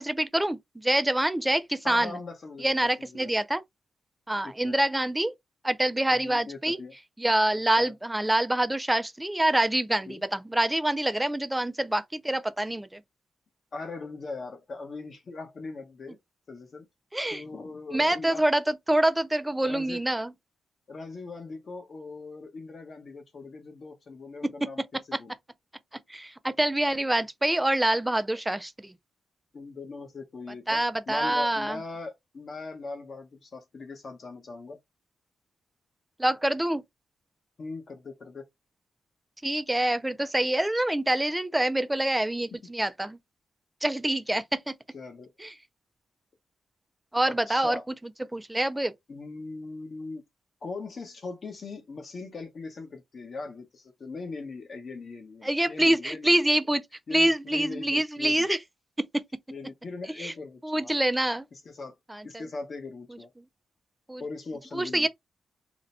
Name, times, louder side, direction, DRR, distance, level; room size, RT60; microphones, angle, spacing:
voice 1, 0.0-2.1 2.6-3.6 4.3-5.3 5.6-6.8 7.2-13.0 17.1-17.4 17.9-20.3 26.1-28.9 30.7-31.8 36.2-36.8 39.4-43.2 43.8-44.6 45.4-45.5 47.1-47.8 48.3-48.9 55.4-56.8 57.1-58.6 59.1-59.2 60.2-60.3 60.6-61.5 62.1-62.2 64.1-64.2 64.7-65.1, right 1 dB, 10° right, 0.3 m, -26 dB
voice 2, 1.8-3.3 4.4-4.8 6.1-6.9 7.8-7.9 10.1-10.2 13.7-16.2 16.5-16.9 17.3-18.5 19.6-20.0 20.9-25.3 29.5-34.8 37.6-38.5 42.5-42.6 44.9-45.3 47.3-47.9 49.1-50.2 50.6-56.4 57.1-58.5 59.5-60.9 61.5-61.9 62.2-63.3 64.2-65.1, left 3 dB, 40° left, 0.8 m, -40 dB
2.6 x 2.1 x 4.0 m
wide cardioid pair, 160°, 0 cm